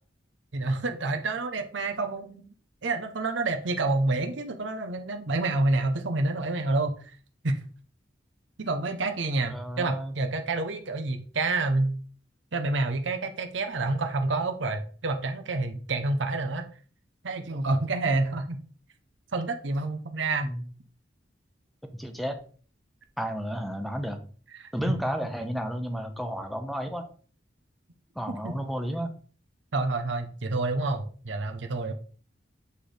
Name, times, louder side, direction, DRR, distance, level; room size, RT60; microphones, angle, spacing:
voice 1, 0.5-2.5 2.8-7.0 7.4-7.6 8.6-12.0 12.5-16.7 17.2-18.6 19.3-20.5 24.6-25.0 28.3-28.5 29.7-31.9, right 2 dB, 80° right, 6 dB, 0.8 m, -28 dB
voice 2, 9.5-10.1 20.4-20.6 21.8-22.4 23.2-24.3 24.7-27.1 28.2-29.1, equal, ahead, 6 dB, 0.7 m, -32 dB
8.2 x 3.4 x 4.0 m, 0.42 s
head